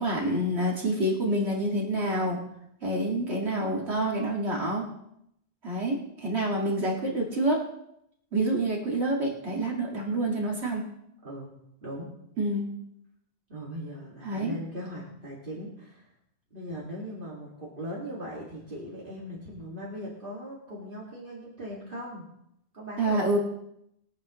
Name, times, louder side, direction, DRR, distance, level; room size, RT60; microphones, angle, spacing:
voice 1, 0.0-2.4 2.8-4.8 5.6-7.6 8.3-10.8 12.4-12.7 14.2-14.5 23.0-23.4, right 1 dB, 80° right, -2 dB, 2.6 m, -27 dB
voice 2, 11.8-12.1 13.5-16.1 16.5-22.3 22.7-23.2, equal, 55° right, -5 dB, 2.5 m, -39 dB
22.5 x 8.7 x 3.1 m, 0.78 s
omnidirectional pair, 1.1 m